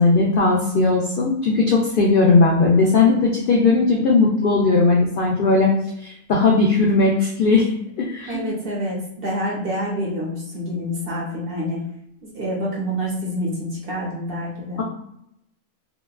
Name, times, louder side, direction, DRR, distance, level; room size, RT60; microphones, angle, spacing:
voice 1, 0.0-5.7 6.0-7.7 8.0-8.4, left 3 dB, 70° left, -2 dB, 0.5 m, -17 dB
voice 2, 8.3-11.8 12.2-14.8, equal, 55° right, -3 dB, 0.8 m, -27 dB
2.8 x 2.2 x 2.2 m, 0.78 s
omnidirectional pair, 1.4 m